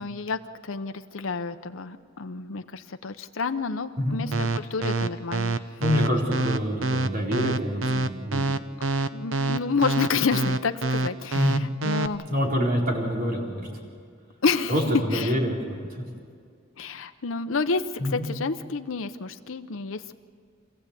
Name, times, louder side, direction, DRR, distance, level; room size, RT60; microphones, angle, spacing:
voice 1, 0.0-5.6 9.0-12.2 14.4-14.7 15.1-15.3 16.8-17.8 18.1-20.1, left 4 dB, 85° left, 8 dB, 0.8 m, -29 dB
sound 1, 4.3-12.1, right 2 dB, 85° right, 0.8 m, -25 dB
voice 2, 5.5-8.5 11.3-11.7 12.3-13.8 14.7-16.0 18.0-18.2, equal, 45° right, -2 dB, 4.4 m, -26 dB
25.5 x 16.0 x 8.3 m, 2.2 s
head